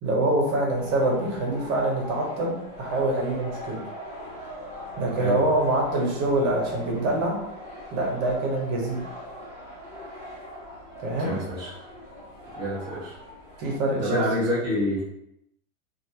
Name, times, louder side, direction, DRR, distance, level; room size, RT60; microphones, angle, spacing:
voice 1, 0.0-3.8 5.0-7.4 7.9-9.0 11.0-11.3 13.6-14.2, right 1 dB, 35° right, -1 dB, 1.0 m, -25 dB
sound 1, 0.7-13.8, equal, 5° left, 1.4 m, -41 dB
voice 2, 11.1-11.7 12.6-13.2 14.0-15.0, equal, 10° right, -9 dB, 0.6 m, -27 dB
3.1 x 2.6 x 2.9 m, 0.78 s
supercardioid pair, 140°, 43 cm